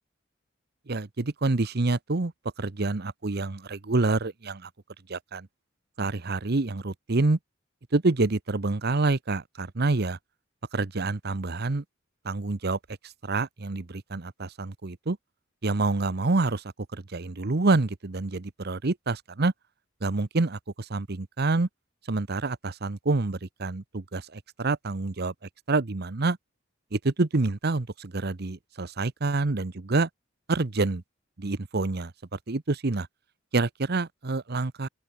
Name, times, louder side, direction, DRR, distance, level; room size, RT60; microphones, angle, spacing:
voice 1, 0.9-2.3 2.6-4.7 5.1-5.5 6.0-7.4 7.9-10.2 10.7-11.8 12.2-15.2 15.6-19.5 20.0-21.7 22.1-25.3 25.7-26.4 26.9-30.1 30.5-31.0 31.4-33.1 33.5-34.9, right 3 dB, 55° right, 0.9 m, -27 dB
open air
head